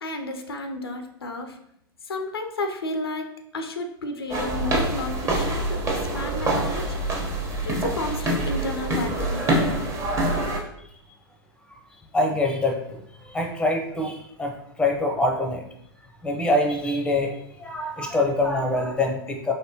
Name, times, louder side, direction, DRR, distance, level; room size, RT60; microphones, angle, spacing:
voice 1, 0.0-1.6 2.0-3.3 3.5-7.0 7.7-9.4, left 2 dB, 80° left, 5 dB, 0.6 m, -32 dB
sound 1, 4.3-10.6, right 1 dB, 25° right, 1.1 m, -25 dB
voice 2, 12.1-15.6 16.2-19.5, left 2 dB, 5° left, 2 dB, 0.7 m, -25 dB
4.2 x 3.2 x 2.9 m, 0.75 s
figure-of-eight pair, 95°, 12 cm